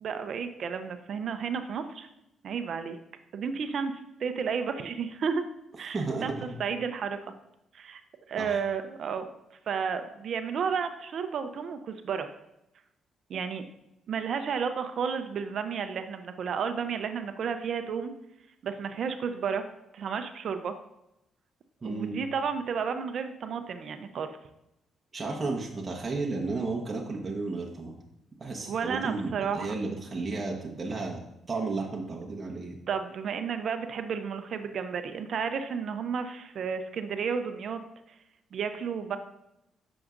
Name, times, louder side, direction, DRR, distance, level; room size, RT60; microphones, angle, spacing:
voice 1, 0.0-2.1 2.4-3.0 3.3-5.4 5.8-7.2 7.7-8.0 8.3-9.3 9.7-12.3 13.3-13.7 14.1-18.1 18.6-19.6 19.9-20.7 21.8-24.3 28.7-29.7 32.9-37.8 38.5-39.2, right 6 dB, 60° right, 8 dB, 0.6 m, -32 dB
voice 2, 5.9-6.6 8.4-8.6 21.8-22.2 25.1-27.9 28.4-31.2 31.5-32.8, right 3 dB, 25° right, -2 dB, 1.2 m, -33 dB
8.7 x 6.3 x 2.5 m, 0.86 s
cardioid pair, 90°, 0 cm